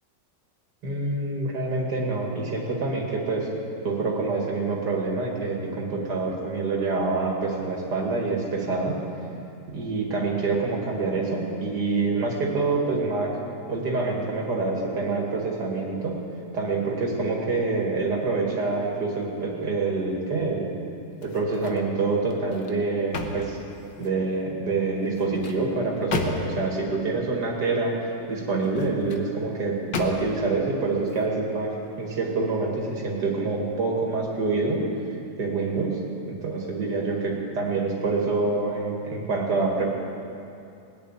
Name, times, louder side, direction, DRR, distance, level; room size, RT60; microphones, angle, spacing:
voice 1, 0.8-3.5 3.8-9.0 9.7-13.3 13.6-16.2 16.5-20.7 21.2-23.6 24.0-27.9 28.3-34.8 35.4-36.0 36.3-39.9, right 3 dB, 65° right, -1 dB, 2.8 m, -26 dB
sound 1, 21.1-21.9 22.3-24.3 25.0-26.7 28.5-29.3 29.9-30.5 31.0-31.2, left 4 dB, 70° left, 1.7 m, -34 dB
20.0 x 7.0 x 9.4 m, 2.7 s
omnidirectional pair, 1.9 m